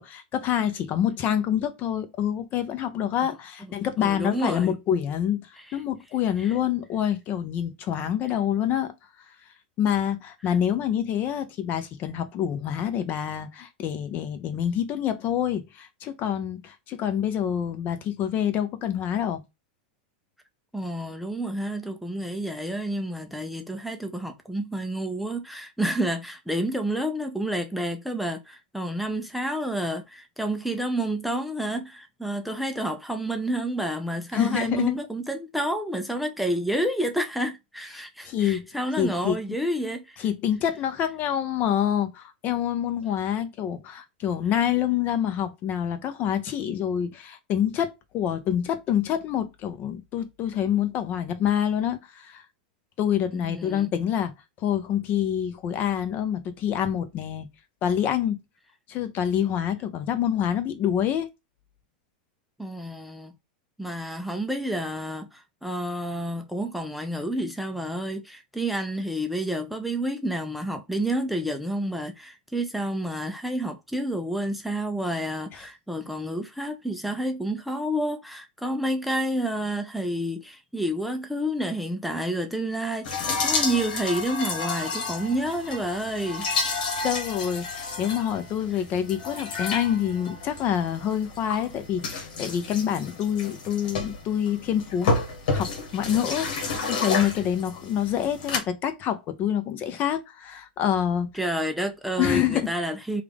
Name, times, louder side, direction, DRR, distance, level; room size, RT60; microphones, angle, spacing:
voice 1, 0.0-5.5 5.7-8.9 9.8-19.4 34.3-35.0 38.2-38.7 39.0-39.4 40.2-52.4 53.0-54.3 54.6-57.5 57.8-58.4 58.9-61.3 87.0-95.2 95.5-101.3 102.2-102.7, left 9 dB, 40° left, 0.6 m, -26 dB
voice 2, 4.0-4.8 5.7-5.8 6.4-6.6 20.7-40.2 53.3-53.9 62.6-63.3 63.8-86.5 101.3-103.2, right 1 dB, ahead, 0.5 m, -29 dB
sound 1, 83.0-98.6, left 3 dB, 70° left, 1.2 m, -31 dB
3.3 x 2.4 x 3.5 m
hypercardioid pair, 115°, 5 cm